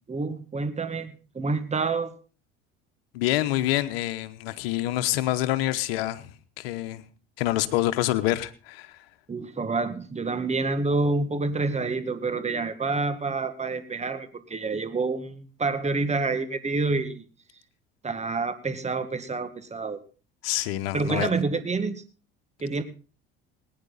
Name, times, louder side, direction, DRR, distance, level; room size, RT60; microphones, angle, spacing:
voice 1, 0.1-2.1 9.3-17.3 18.0-20.0 20.9-22.0 22.6-22.8, right 3 dB, 25° right, 1.9 m, -28 dB
voice 2, 3.1-6.3 6.6-7.0 7.4-9.0 20.4-21.3, left 15 dB, 80° left, 1.1 m, -26 dB
19.0 x 9.7 x 4.1 m
hypercardioid pair, 70°, 29 cm